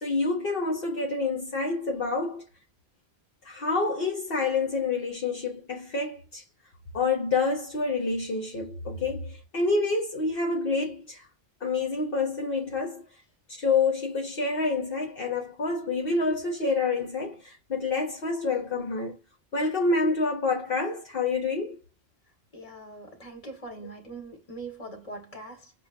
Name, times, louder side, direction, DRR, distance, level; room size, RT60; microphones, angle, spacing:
voice 1, 0.0-2.4 3.4-6.4 6.9-11.2 11.6-13.0 13.6-19.2 19.5-21.8, left 3 dB, 60° left, 1.1 m, -28 dB
voice 2, 22.5-25.7, right 2 dB, 35° left, 1.6 m, -42 dB
6.6 x 2.3 x 2.5 m
omnidirectional pair, 1.1 m